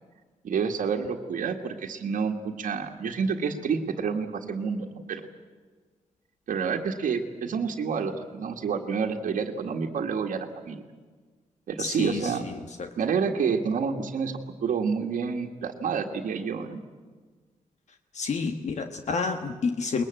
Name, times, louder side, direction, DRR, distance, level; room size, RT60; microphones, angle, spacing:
voice 1, 0.4-5.2 6.5-10.8 11.7-12.4 13.0-16.8, right 6 dB, 90° right, 1 dB, 1.8 m, -29 dB
voice 2, 11.8-12.9 18.1-20.0, left 4 dB, 60° left, 7 dB, 1.4 m, -30 dB
21.5 x 21.0 x 9.0 m, 1.4 s
wide cardioid pair, 160°, 13 cm